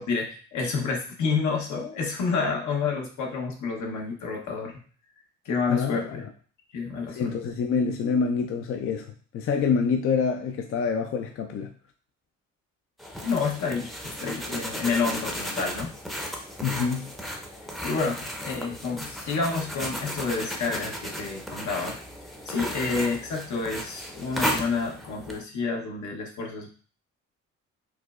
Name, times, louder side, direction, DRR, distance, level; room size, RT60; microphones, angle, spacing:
voice 1, 0.0-4.8 5.4-6.2 6.7-7.5 13.2-13.9 14.2-15.9 17.8-22.0 22.4-26.7, left 4 dB, 75° left, 1 dB, 0.9 m, -29 dB
voice 2, 5.7-6.3 7.2-9.1 9.3-11.7 16.6-17.1, left 5 dB, 45° left, 4 dB, 0.4 m, -26 dB
sound 1, 13.0-25.4, equal, ahead, 0.6 m, -35 dB
4.6 x 2.0 x 2.3 m, 0.42 s
cardioid pair, 90°, 30 cm